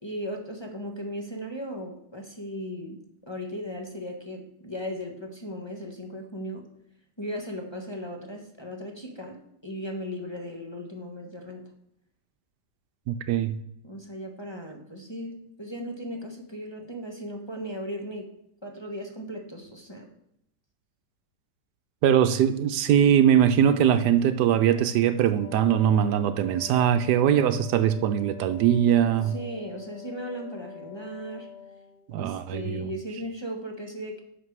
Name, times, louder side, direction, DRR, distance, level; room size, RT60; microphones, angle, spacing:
voice 1, 0.0-3.0 3.3-6.6 7.2-9.4 9.6-11.6 13.8-18.3 18.6-20.1 29.3-31.5 32.2-34.2, equal, 15° left, 1 dB, 1.3 m, -37 dB
voice 2, 13.1-13.6 22.0-29.3 32.1-32.9, right 9 dB, 80° right, 11 dB, 1.2 m, -21 dB
Wind instrument woodwind instrument, 25.4-32.1, left 7 dB, 45° left, 1.0 m, -45 dB
11.0 x 6.7 x 4.8 m, 0.76 s
omnidirectional pair, 1.9 m